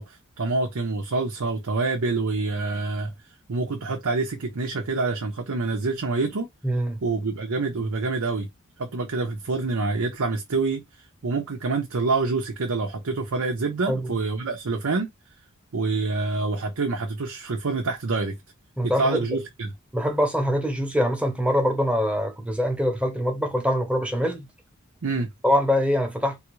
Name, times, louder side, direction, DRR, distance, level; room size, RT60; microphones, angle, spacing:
voice 1, 0.0-3.1 3.5-6.5 7.0-8.5 8.8-15.1 15.7-18.3 18.8-19.7 25.0-25.3, right 3 dB, 85° right, 0.7 m, -26 dB
voice 2, 6.6-7.0 13.9-14.1 18.8-19.3 19.9-24.5 25.4-26.4, equal, 5° right, 0.9 m, -24 dB
3.4 x 2.4 x 3.1 m
head